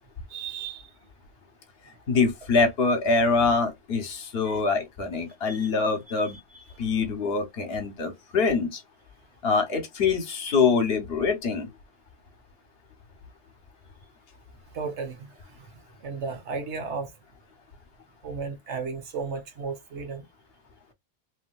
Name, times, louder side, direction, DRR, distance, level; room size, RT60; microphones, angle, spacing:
voice 1, 0.3-0.9 4.4-4.6 5.5-5.7 6.3-6.8 14.7-15.3 16.0-17.1 18.2-20.2, right 5 dB, 85° right, 1.2 m, -34 dB
voice 2, 2.1-6.4 6.8-8.8 9.4-11.7, left 4 dB, 65° left, 1.0 m, -24 dB
3.1 x 2.7 x 2.2 m
omnidirectional pair, 1.1 m